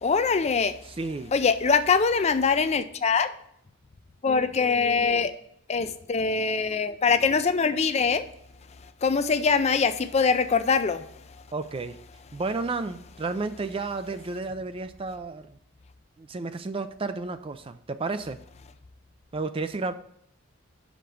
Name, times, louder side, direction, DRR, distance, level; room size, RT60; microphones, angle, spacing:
voice 1, 0.0-0.7 1.3-3.3 4.2-5.3 5.7-8.3 9.0-11.0, left 5 dB, 30° left, 0.4 m, -23 dB
voice 2, 0.9-1.3 11.5-12.0 12.3-15.6 16.2-18.4 19.3-19.9, right 3 dB, 25° right, 0.4 m, -32 dB
5.7 x 5.1 x 6.4 m
head